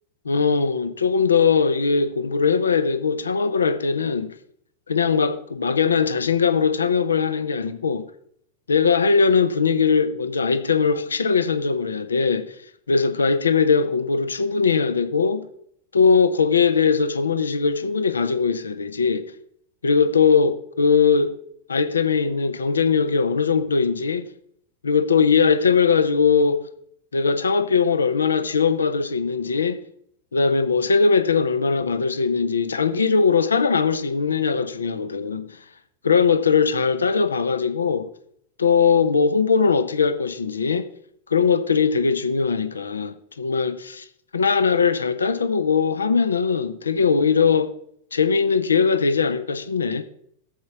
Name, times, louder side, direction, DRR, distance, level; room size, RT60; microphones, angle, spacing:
voice 1, 0.3-4.3 4.9-8.0 8.7-12.5 12.9-15.4 15.9-19.2 19.8-21.3 21.7-24.3 24.8-26.6 27.1-29.8 30.3-35.5 36.0-38.1 38.6-40.8 41.3-44.1 44.3-47.7 48.1-50.0, left 5 dB, 75° left, 0.8 m, -20 dB
14.0 x 5.4 x 6.0 m
figure-of-eight pair, 90°, 0 cm